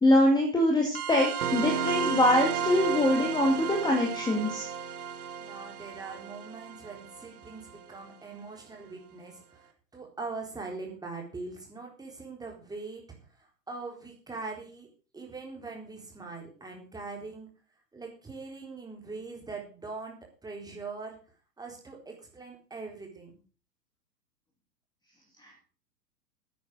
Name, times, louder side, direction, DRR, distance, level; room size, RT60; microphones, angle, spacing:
voice 1, 0.0-4.6 25.4-25.5, left 1 dB, 10° left, 1 dB, 2.3 m, -24 dB
sound 1, 0.9-8.0, right 7 dB, 60° right, 1.8 m, -33 dB
voice 2, 5.4-13.0 13.4-14.9 15.1-17.5 17.9-21.2 21.6-23.4, right 3 dB, 5° right, 0 dB, 4.0 m, -42 dB
10.5 x 9.3 x 6.3 m, 0.38 s
figure-of-eight pair, 110°, 50 cm